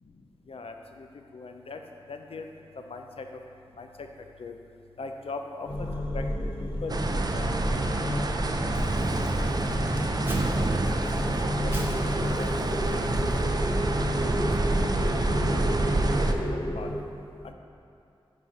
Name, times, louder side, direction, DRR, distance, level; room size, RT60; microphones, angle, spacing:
voice 1, 0.5-1.1 1.3-1.8 2.1-2.5 2.9-3.3 3.8-3.9 4.4-4.5 5.0-5.9 6.1-6.2 6.8-7.5 7.9-8.2 8.8-9.7 10.0-10.1 10.7-10.8 11.6-12.5 13.0-13.1 14.1-14.5 15.6-16.9 17.4-17.5, left 3 dB, 80° left, 5 dB, 0.4 m, -40 dB
sound 1, 5.7-17.0, left 1 dB, 65° left, 1.0 m, -31 dB
sound 2, 6.9-16.3, right 2 dB, 45° right, 0.4 m, -27 dB
Crumpling crinkling, 8.7-14.3, right 1 dB, 20° right, 0.9 m, -45 dB
6.8 x 4.8 x 3.8 m, 2.6 s
wide cardioid pair, 75°, 10 cm